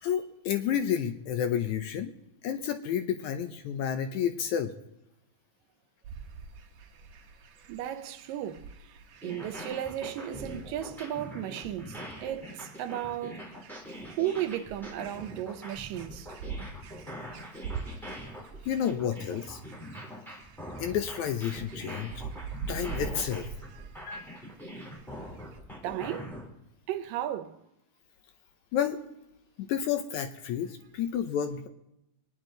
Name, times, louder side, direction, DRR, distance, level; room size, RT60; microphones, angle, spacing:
voice 1, 0.0-2.1 2.4-4.7 18.7-19.6 20.8-22.2 22.7-23.5 24.0-24.3 28.7-29.0 29.6-31.7, left 9 dB, 75° left, 1.9 m, -30 dB
sound 1, 6.0-25.6, right 5 dB, 60° right, 2.0 m, -45 dB
voice 2, 7.7-13.5 14.1-16.3 23.7-23.9 25.8-26.4 26.9-27.6, right 12 dB, 85° right, 2.4 m, -35 dB
sound 2, 9.1-26.4, equal, ahead, 3.1 m, -43 dB
23.5 x 10.0 x 3.9 m
omnidirectional pair, 3.9 m